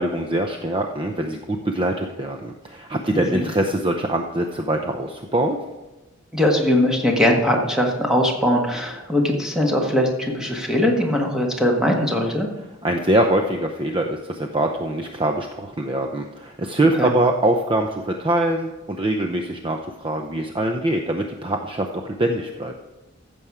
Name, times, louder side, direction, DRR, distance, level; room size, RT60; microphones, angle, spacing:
voice 1, 0.0-5.6 12.8-22.7, right 1 dB, 25° right, 4 dB, 0.6 m, -23 dB
voice 2, 3.1-3.5 6.3-12.5 17.0-17.1, left 1 dB, 5° right, 0 dB, 1.6 m, -20 dB
14.5 x 7.0 x 4.8 m, 1.1 s
head